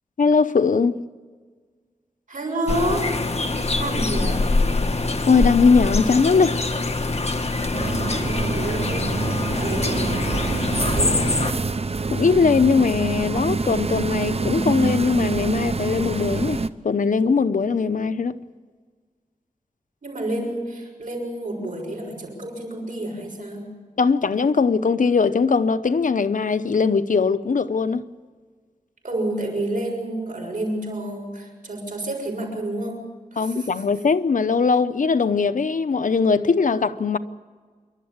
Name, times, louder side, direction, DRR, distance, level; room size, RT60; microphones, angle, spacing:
voice 1, 0.2-1.0 5.3-6.6 12.1-18.4 24.0-28.0 33.4-37.2, left 5 dB, 75° left, 0.8 m, -20 dB
voice 2, 2.3-3.2 3.8-4.5 7.8-9.1 9.5-11.7 20.0-23.8 29.0-33.7, right 1 dB, 75° right, 6.8 m, -29 dB
sound 1, 2.7-11.5, left 2 dB, 50° left, 1.6 m, -24 dB
sound 2, 7.7-16.7, right 4 dB, 50° right, 0.7 m, -26 dB
27.5 x 12.0 x 8.7 m
wide cardioid pair, 90°, 14 cm